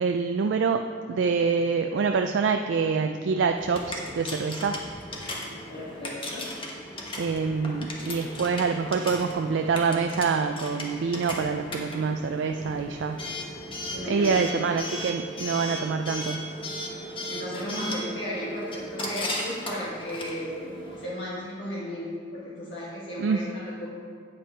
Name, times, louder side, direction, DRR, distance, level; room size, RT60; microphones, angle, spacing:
voice 1, 0.0-4.8 7.2-13.3 14.1-16.5 23.2-23.5, right 5 dB, 75° right, 5 dB, 0.3 m, -26 dB
Coin (dropping) / Alarm, 3.6-21.1, left 1 dB, 30° left, 1.2 m, -36 dB
voice 2, 5.7-6.5 13.9-14.8 17.3-23.9, left 1 dB, 75° left, -7 dB, 1.6 m, -35 dB
8.6 x 7.7 x 4.4 m, 2.2 s
head